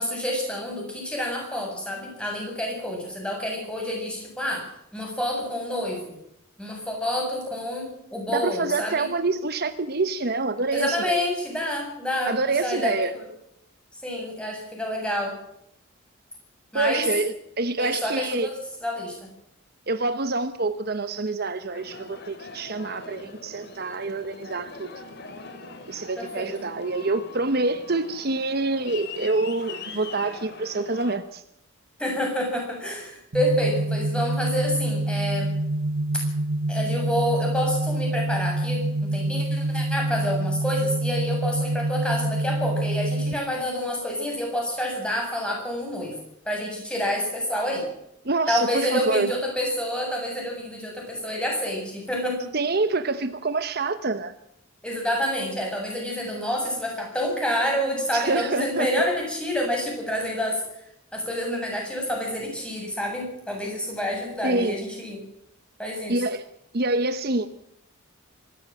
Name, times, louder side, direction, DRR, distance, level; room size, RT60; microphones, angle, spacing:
voice 1, 0.0-4.7 4.9-6.1 6.6-9.1 10.7-13.3 14.0-15.3 16.7-17.1 17.8-18.5 18.8-19.2 26.2-26.5 32.0-35.5 36.7-46.1 46.4-47.8 48.5-52.5 54.8-60.6 61.1-65.2 65.8-66.2, left 1 dB, 5° left, 0 dB, 7.5 m, -28 dB
voice 2, 8.3-11.3 12.3-13.1 16.7-18.5 19.9-24.9 25.9-31.4 48.2-49.3 52.5-54.3 58.1-58.9 64.4-64.8 66.1-66.4 66.7-67.5, right 3 dB, 50° right, 11 dB, 1.0 m, -26 dB
Aircraft, 21.7-31.2, left 3 dB, 50° left, 3.2 m, -42 dB
sound 1, 33.3-43.3, right 1 dB, 80° right, 1.6 m, -26 dB
25.0 x 14.0 x 7.7 m, 0.78 s
head